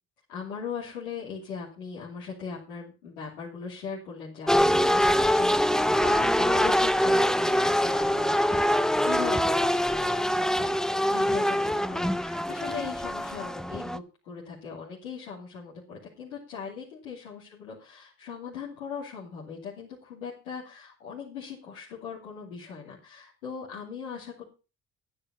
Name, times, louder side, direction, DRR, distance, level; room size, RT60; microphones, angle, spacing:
voice 1, 0.3-8.4 9.1-24.4, left 6 dB, 90° left, -8 dB, 2.9 m, -39 dB
sound 1, 4.5-14.0, equal, ahead, 0.5 m, -24 dB
10.5 x 9.9 x 5.4 m, 0.32 s
hypercardioid pair, 50°, 42 cm